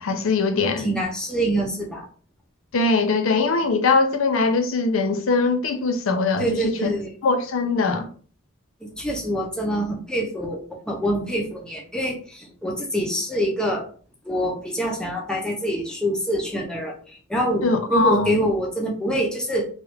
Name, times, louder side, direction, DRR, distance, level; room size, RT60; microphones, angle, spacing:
voice 1, 0.0-1.0 2.7-6.9 7.2-8.1 17.6-18.4, left 3 dB, 65° left, 0.4 m, -21 dB
voice 2, 0.8-2.1 6.4-7.1 9.0-13.8 14.3-16.9 17.3-19.7, equal, 5° left, 0.5 m, -25 dB
3.1 x 2.4 x 3.1 m
head